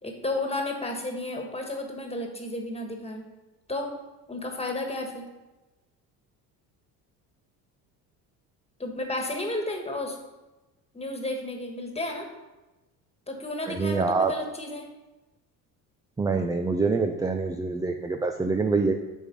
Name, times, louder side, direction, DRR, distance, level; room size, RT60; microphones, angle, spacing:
voice 1, 0.0-3.2 3.7-3.9 4.3-5.2 8.8-10.2 10.9-12.3 13.3-14.9, left 2 dB, 15° left, 3 dB, 1.5 m, -32 dB
voice 2, 13.7-14.3 16.2-18.9, right 4 dB, 10° right, 5 dB, 0.3 m, -25 dB
8.6 x 3.5 x 5.3 m, 1.1 s
supercardioid pair, 90°, 43 cm